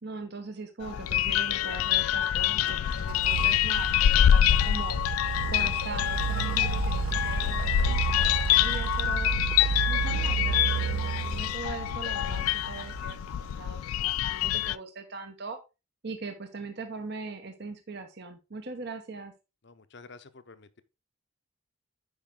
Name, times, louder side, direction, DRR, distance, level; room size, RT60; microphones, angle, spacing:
voice 1, 0.0-5.0 5.5-8.1 8.6-9.3 9.9-15.6 16.0-19.3, right 3 dB, 50° right, 0.9 m, -40 dB
sound 1, 0.8-14.8, left 11 dB, 90° left, 0.3 m, -26 dB
sound 2, 2.7-13.5, right 8 dB, 75° right, 0.3 m, -32 dB
voice 2, 19.6-20.8, left 4 dB, 55° left, 0.7 m, -50 dB
8.8 x 5.2 x 3.7 m
head